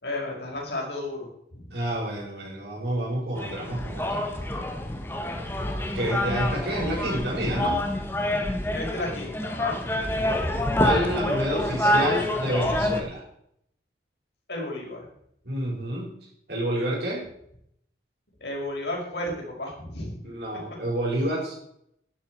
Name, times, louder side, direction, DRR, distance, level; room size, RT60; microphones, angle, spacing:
voice 1, 0.0-1.6 8.7-9.8 14.5-15.1 18.4-20.2, left 1 dB, 75° left, -1 dB, 5.1 m, -33 dB
voice 2, 1.7-4.3 5.9-7.8 10.8-13.2 15.4-16.1 16.5-17.3 20.2-21.5, right 1 dB, 70° right, -3 dB, 5.7 m, -29 dB
sound 1, 3.4-13.0, left 1 dB, 15° left, 1.4 m, -27 dB
12.5 x 11.0 x 4.7 m, 0.72 s
head